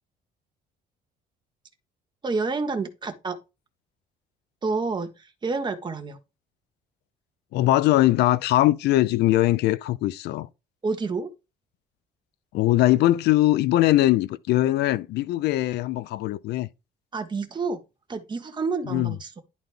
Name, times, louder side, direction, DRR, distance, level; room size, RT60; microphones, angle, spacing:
voice 1, 2.2-3.4 4.6-6.2 10.8-11.3 17.1-17.8 18.1-19.4, right 4 dB, 25° right, 1.3 m, -29 dB
voice 2, 7.5-10.5 12.5-16.7 18.9-19.2, left 15 dB, 75° left, 0.5 m, -21 dB
11.0 x 4.0 x 3.4 m
cardioid pair, 110°, 17 cm